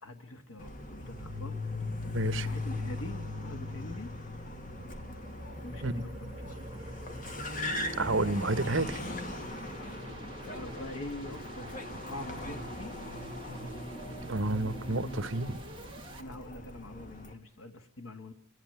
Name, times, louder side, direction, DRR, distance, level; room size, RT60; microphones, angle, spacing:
voice 1, 0.0-1.6 2.3-4.1 5.6-6.9 9.8-10.1 10.4-11.8 12.1-12.9 16.1-18.3, left 1 dB, 90° left, 6 dB, 1.7 m, -44 dB
Car, 0.6-17.3, left 2 dB, 40° left, 1.9 m, -39 dB
voice 2, 2.1-2.5 5.8-6.0 8.0-9.0 14.2-15.6, right 2 dB, 65° right, 12 dB, 1.2 m, -30 dB
sound 1, 2.7-16.2, right 1 dB, 25° right, 1.7 m, -50 dB
28.5 x 11.5 x 9.6 m, 0.69 s
head